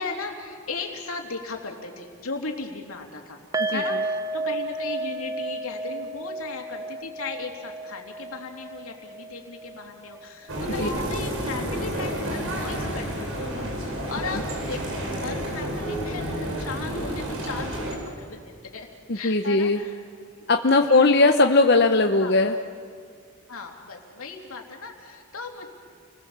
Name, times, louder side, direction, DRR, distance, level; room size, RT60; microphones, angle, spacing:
voice 1, 0.0-3.4 3.7-18.9 19.1-20.0 20.9-21.3 22.2-22.4 23.5-25.7, left 4 dB, 85° left, 2 dB, 3.2 m, -37 dB
sound 1, 3.5-10.7 11.0-11.2 11.6-11.7, right 2 dB, 15° right, 0.7 m, -32 dB
sound 2, 10.5-18.0, equal, 80° right, 5.4 m, -30 dB
voice 2, 19.1-19.8 20.5-22.5, left 3 dB, 50° left, 5 dB, 0.8 m, -19 dB
29.5 x 20.0 x 7.4 m, 2.2 s
head